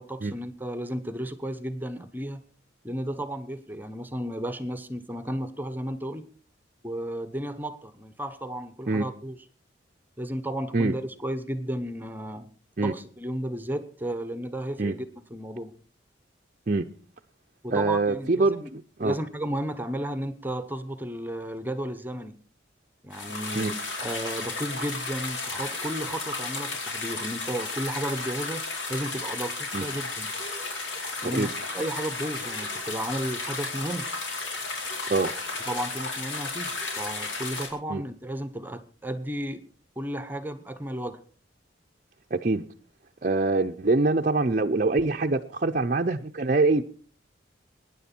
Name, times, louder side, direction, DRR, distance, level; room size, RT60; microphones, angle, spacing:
voice 1, 0.0-2.4 2.8-6.3 6.8-9.4 10.2-12.5 12.8-15.0 15.3-15.7 17.6-18.7 19.0-22.3 23.0-30.3 31.2-34.1 35.7-39.7 40.0-41.2, right 1 dB, 10° right, 0.9 m, -33 dB
voice 2, 17.7-19.2 23.6-23.7 29.7-29.8 31.3-31.5 35.1-35.3 37.9-38.0 42.3-42.6 43.2-46.8, right 3 dB, 40° right, 0.6 m, -24 dB
sound 1, 23.1-37.7, left 3 dB, 85° left, 4.5 m, -33 dB
23.0 x 10.0 x 4.4 m
head